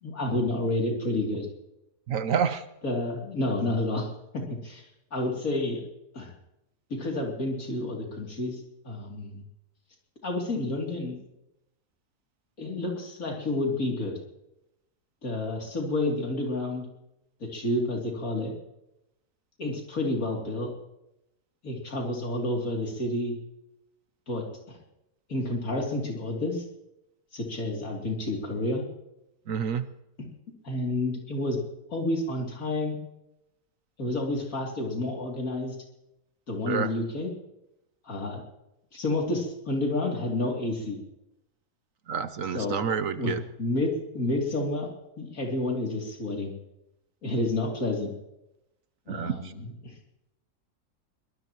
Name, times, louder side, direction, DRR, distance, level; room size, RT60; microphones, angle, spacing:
voice 1, 0.0-1.5 2.8-4.1 4.6-4.8 5.1-5.8 6.1-6.3 6.9-8.6 8.8-9.4 10.2-11.2 12.6-14.1 15.2-16.8 17.4-18.5 19.6-20.7 21.6-23.3 24.3-24.8 25.3-26.6 27.3-28.8 30.6-31.6 31.9-33.0 34.0-35.7 36.5-37.3 38.1-38.4 38.9-41.0 42.5-42.8 43.2-43.3 43.6-44.9 45.2-46.5 47.2-48.1 49.1-49.9, left 2 dB, 60° left, 0 dB, 3.3 m, -29 dB
voice 2, 2.1-2.6 29.5-29.9 36.7-36.9 42.1-43.4 49.1-49.5, right 7 dB, 65° right, 11 dB, 1.1 m, -28 dB
22.5 x 18.5 x 3.0 m, 0.89 s
omnidirectional pair, 1.7 m